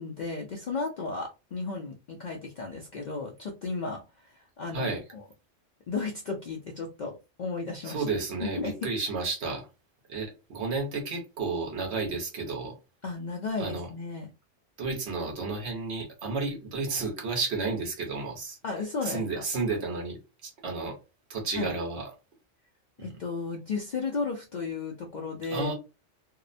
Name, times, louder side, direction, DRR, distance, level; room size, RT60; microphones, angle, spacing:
voice 1, 0.0-5.2 5.9-7.1 7.4-8.0 8.4-8.8 13.0-14.3 18.6-19.4 21.6-21.7 23.0-25.7, left 4 dB, 60° left, 0.5 m, -34 dB
voice 2, 7.8-9.7 10.1-12.7 13.6-13.9 14.8-18.6 19.0-21.0 21.3-22.1 23.0-23.1 25.5-25.7, right 3 dB, 65° right, 1.1 m, -32 dB
2.7 x 2.0 x 2.5 m
omnidirectional pair, 1.2 m